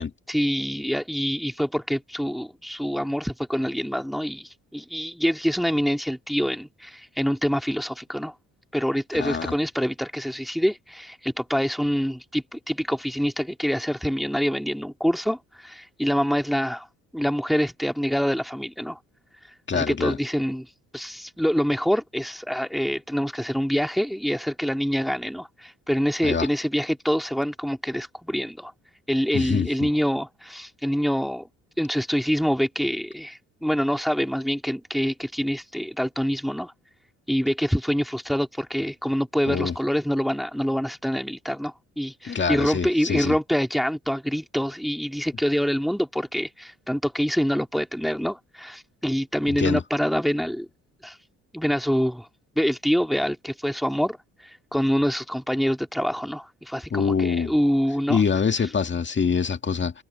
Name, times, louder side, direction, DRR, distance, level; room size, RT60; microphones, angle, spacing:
voice 1, 0.3-8.3 8.7-16.9 17.1-19.0 19.7-20.7 20.9-28.7 29.1-31.5 31.8-36.7 37.3-50.7 51.0-51.2 51.5-52.3 52.6-54.2 54.4-58.2, equal, ahead, 2.3 m, -26 dB
voice 2, 9.1-9.5 19.7-20.2 26.2-26.5 29.3-29.9 39.5-39.8 42.2-43.4 49.5-49.8 56.9-57.5 58.1-60.0, left 6 dB, 40° left, 2.1 m, -25 dB
cardioid pair, 90°, 30 cm